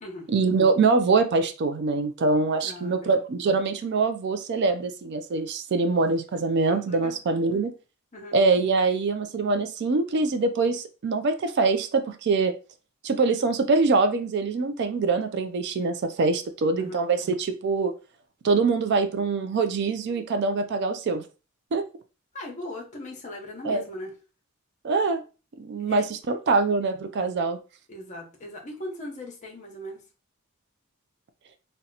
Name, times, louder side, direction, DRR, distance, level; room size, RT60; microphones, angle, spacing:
voice 1, 0.3-7.7 8.3-12.5 13.0-17.9 18.4-21.2 21.7-21.8 23.7-23.8 24.8-25.2 25.6-27.6, right 3 dB, 50° right, 8 dB, 0.4 m, -24 dB
voice 2, 2.6-3.1 6.6-7.2 8.1-8.4 16.8-17.0 22.3-24.1 25.9-26.0 27.9-30.0, left 1 dB, 35° left, 2 dB, 0.8 m, -39 dB
2.8 x 2.2 x 3.8 m, 0.33 s
head